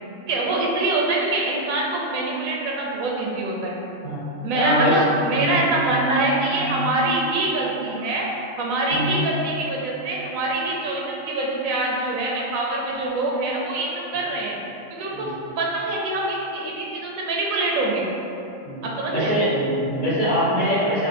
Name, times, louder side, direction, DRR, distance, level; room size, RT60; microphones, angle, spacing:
voice 1, 0.3-3.7 4.4-8.3 8.6-14.6 14.9-15.3 15.6-18.1 18.8-19.3, right 2 dB, 85° right, -2 dB, 1.1 m, -24 dB
voice 2, 4.5-5.1 5.3-5.6 6.6-6.8 8.9-9.1 15.1-15.3 18.6-21.1, equal, 40° left, -9 dB, 1.0 m, -23 dB
5.6 x 2.4 x 2.6 m, 2.8 s
omnidirectional pair, 1.4 m